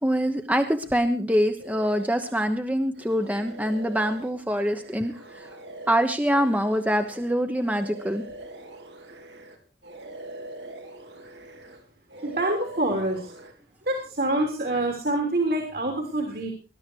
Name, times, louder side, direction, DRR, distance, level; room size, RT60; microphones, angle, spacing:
voice 1, 0.0-5.5 5.9-8.2, equal, 10° right, 7 dB, 1.1 m, -25 dB
sound 1, 1.6-2.6 3.0-9.6 9.8-11.8 12.1-13.5, right 1 dB, 85° right, 3.9 m, -43 dB
voice 2, 12.2-13.3 13.8-16.5, right 1 dB, 55° right, 3 dB, 3.4 m, -26 dB
20.5 x 12.0 x 4.7 m, 0.36 s
head